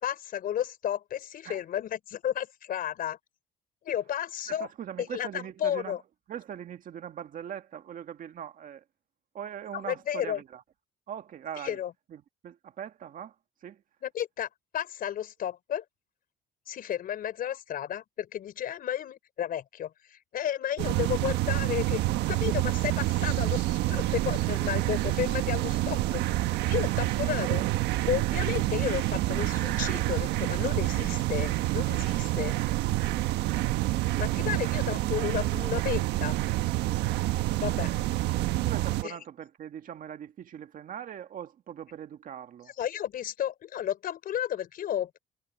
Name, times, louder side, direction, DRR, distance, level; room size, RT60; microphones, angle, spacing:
voice 1, 0.0-3.2 3.8-4.7 5.0-6.0 9.9-10.4 11.6-11.9 14.0-14.5 14.7-15.8 16.7-22.0 22.3-27.6 28.1-32.6 34.2-36.4 37.5-37.9 39.0-39.1 42.8-45.2, left 10 dB, 60° left, 4.7 m, -32 dB
voice 2, 4.5-6.0 6.3-8.8 9.3-10.6 11.1-11.8 12.1-13.4 13.6-13.8 37.7-38.2 38.6-42.7, right 9 dB, 55° right, 1.8 m, -41 dB
sound 1, 20.8-39.0, right 16 dB, 85° right, 1.3 m, -28 dB
cardioid pair, 110°, 17 cm